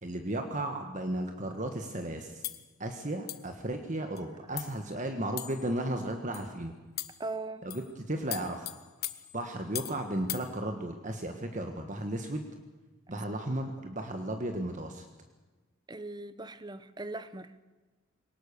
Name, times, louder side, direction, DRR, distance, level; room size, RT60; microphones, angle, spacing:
voice 1, 0.0-2.4 2.8-6.7 7.6-8.7 9.3-12.4 13.1-15.1, right 1 dB, 35° right, 5 dB, 1.4 m, -34 dB
sound 1, 2.4-2.7 3.3-3.5 4.2-4.3 4.6-4.8 5.4-5.7 6.3-6.5 7.0-7.3 7.7-7.9 8.3-10.0 10.3-10.5, left 14 dB, 45° left, 1.1 m, -39 dB
voice 2, 7.2-7.6 13.1-13.2 15.9-17.5, right 2 dB, 20° right, 14 dB, 0.9 m, -39 dB
22.5 x 19.0 x 6.9 m, 1.2 s
head